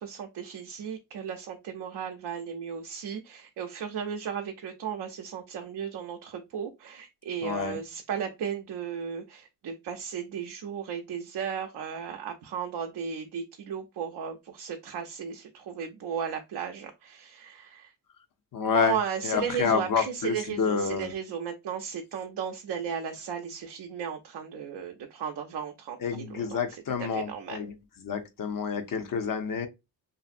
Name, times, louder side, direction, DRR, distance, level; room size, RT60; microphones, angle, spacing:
voice 1, 0.0-17.9 18.7-27.7, right 7 dB, 70° right, 0.5 m, -35 dB
voice 2, 7.4-7.7 18.5-19.0 19.2-21.1 26.0-27.7 28.0-29.7, left 6 dB, 50° left, 0.6 m, -28 dB
2.6 x 2.5 x 2.4 m
cardioid pair, 75°, 41 cm